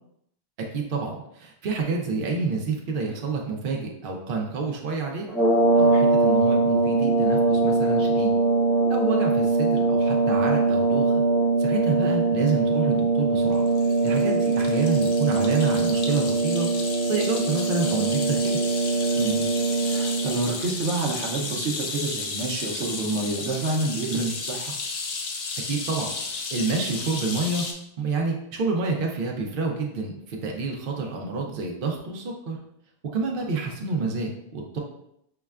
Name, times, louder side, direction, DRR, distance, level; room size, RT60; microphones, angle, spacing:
voice 1, 0.7-5.3 5.8-8.3 8.9-11.2 11.6-13.6 14.0-16.7 17.1-18.6 24.1-24.3 25.7-27.6 28.0-32.6 33.1-34.8, right 4 dB, 60° right, 0 dB, 0.8 m, -28 dB
sound 1, 5.3-20.4, right 3 dB, 5° right, 0.9 m, -22 dB
sound 2, 13.5-27.7, left 4 dB, 60° left, 0.7 m, -34 dB
voice 2, 19.1-19.5 19.8-24.7, right 3 dB, 90° right, 0 dB, 0.9 m, -28 dB
5.6 x 2.1 x 2.3 m, 0.76 s
omnidirectional pair, 1.1 m